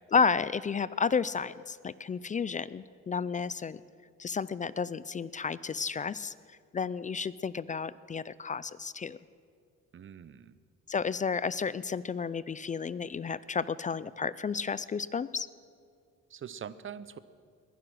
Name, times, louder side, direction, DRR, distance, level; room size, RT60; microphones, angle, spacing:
voice 1, 0.1-3.8 4.2-9.2 10.9-15.5, left 5 dB, 25° left, 18 dB, 0.3 m, -32 dB
voice 2, 9.9-10.6 16.3-17.2, right 8 dB, 40° right, 15 dB, 0.7 m, -43 dB
21.0 x 11.0 x 6.3 m, 2.2 s
cardioid pair, 90°, 30 cm